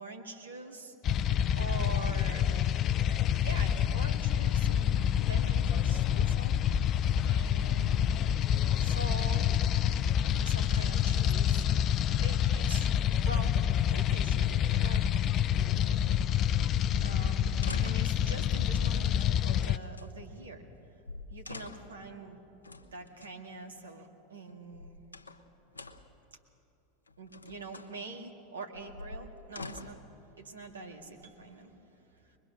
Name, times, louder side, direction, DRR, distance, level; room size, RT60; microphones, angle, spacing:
voice 1, 0.0-8.1 8.8-9.6 10.3-11.7 12.2-13.6 13.9-20.6 21.3-22.4 22.7-25.0 27.2-32.4, right 3 dB, 80° right, 3 dB, 2.0 m, -45 dB
sound 1, 1.0-19.8, left 9 dB, 40° left, 0.5 m, -27 dB
sound 2, 17.4-18.2 19.1-20.1 20.8-20.9 21.0-22.0 22.6-23.3 24.5-25.4 25.7-26.2 27.1-27.9 28.7-30.1 30.9-31.6, left 3 dB, 90° left, 0.9 m, -46 dB
23.5 x 21.5 x 6.5 m, 2.7 s
figure-of-eight pair, 85°, 0 cm